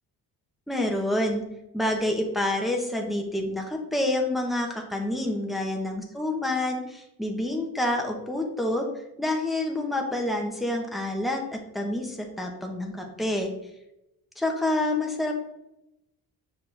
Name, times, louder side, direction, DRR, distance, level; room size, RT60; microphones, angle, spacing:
voice 1, 0.7-1.4 1.7-13.5 14.4-15.3, left 1 dB, ahead, 1 dB, 1.0 m, -28 dB
6.7 x 4.4 x 3.3 m, 0.86 s
cardioid pair, 90°, 38 cm